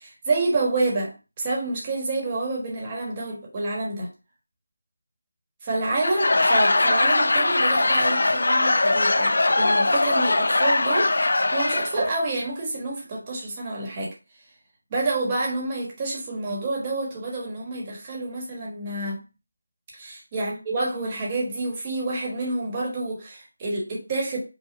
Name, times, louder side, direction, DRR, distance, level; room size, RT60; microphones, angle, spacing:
voice 1, 0.0-4.1 5.6-14.1 14.9-19.2 19.9-24.4, right 2 dB, 20° right, -2 dB, 1.3 m, -28 dB
Laughter / Crowd, 5.9-12.1, left 2 dB, 60° left, 0.4 m, -21 dB
5.2 x 2.3 x 4.0 m, 0.31 s
figure-of-eight pair, 170°, 0 cm